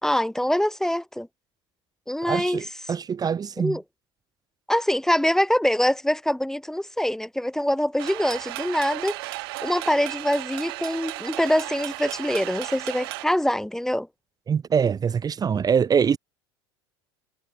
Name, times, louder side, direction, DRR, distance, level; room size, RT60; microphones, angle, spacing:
voice 1, 0.0-1.3 2.1-2.7 3.6-3.8 4.7-9.2 9.6-14.1, left 1 dB, 5° left, 1.7 m, -24 dB
voice 2, 2.3-3.8 14.5-16.2, right 7 dB, 30° right, 1.6 m, -23 dB
sound 1, 8.0-13.2, right 22 dB, 75° right, 5.2 m, -34 dB
hypercardioid pair, 85°, 13 cm